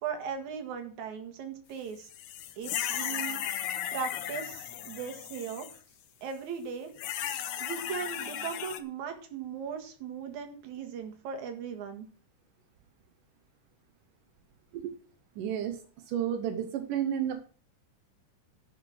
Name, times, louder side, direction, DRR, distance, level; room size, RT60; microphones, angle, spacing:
voice 1, 0.0-2.1 2.6-3.4 3.9-5.7 6.2-6.9 7.6-12.1, right 6 dB, 65° right, 5 dB, 3.1 m, -38 dB
sound 1, 2.1-5.8 7.0-8.8, left 10 dB, 70° left, 2.3 m, -35 dB
voice 2, 15.4-15.8 16.1-17.4, right 9 dB, 85° right, 6 dB, 2.6 m, -31 dB
11.0 x 7.8 x 6.1 m, 0.41 s
omnidirectional pair, 3.7 m